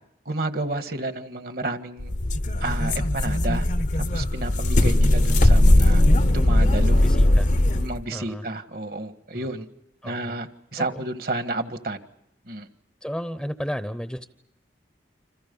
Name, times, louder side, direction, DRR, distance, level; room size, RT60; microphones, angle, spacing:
voice 1, 0.3-2.1 2.6-3.7 4.0-6.0 6.3-7.0 7.7-9.7 10.0-12.0 12.5-12.7, right 2 dB, 55° right, 8 dB, 1.7 m, -31 dB
sound 1, 2.0-8.0, left 1 dB, 40° left, 0.9 m, -19 dB
voice 2, 7.0-7.5 8.1-8.5 9.3-9.5 10.0-10.4 10.8-11.0 13.0-14.3, equal, ahead, 9 dB, 0.8 m, -33 dB
29.5 x 27.0 x 5.5 m, 0.80 s
head